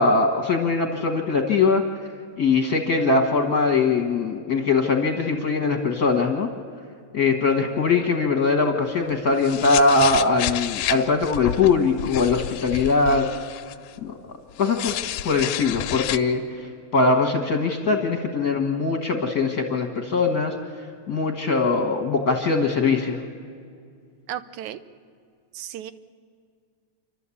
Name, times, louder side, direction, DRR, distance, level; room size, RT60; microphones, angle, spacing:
voice 1, 0.0-1.8 2.4-6.5 7.1-13.3 14.0-14.2 14.6-14.9 15.2-23.2, left 4 dB, 50° left, 4 dB, 1.2 m, -21 dB
voice 2, 7.4-7.7 24.3-24.8 25.5-25.9, right 11 dB, 80° right, 13 dB, 2.1 m, -35 dB
sound 1, 9.0-14.0 14.6-16.2, left 12 dB, 85° left, 2.1 m, -30 dB
28.5 x 12.0 x 8.4 m, 2.3 s
omnidirectional pair, 3.5 m